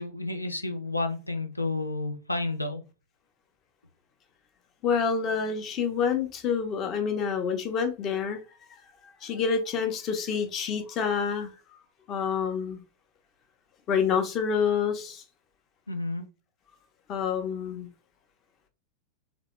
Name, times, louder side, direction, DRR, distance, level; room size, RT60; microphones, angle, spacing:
voice 1, 0.0-2.8 15.9-16.3, left 2 dB, 85° left, 8 dB, 0.6 m, -31 dB
voice 2, 4.8-8.4 9.2-11.5 12.1-12.8 13.9-15.2 17.1-17.9, left 6 dB, 35° left, 6 dB, 0.9 m, -27 dB
3.9 x 3.1 x 3.3 m, 0.31 s
figure-of-eight pair, 90°, 0 cm